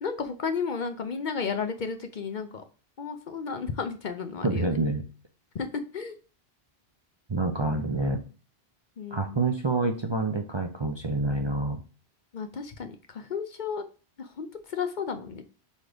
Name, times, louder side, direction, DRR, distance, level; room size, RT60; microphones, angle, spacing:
voice 1, 0.0-2.6 3.0-4.7 5.5-6.2 9.0-9.5 12.3-13.8 14.2-15.4, left 5 dB, 50° left, 7 dB, 0.7 m, -33 dB
voice 2, 4.4-5.0 7.3-8.2 9.1-11.8, right 2 dB, 35° right, 3 dB, 0.5 m, -27 dB
4.7 x 4.2 x 5.0 m, 0.35 s
omnidirectional pair, 1.1 m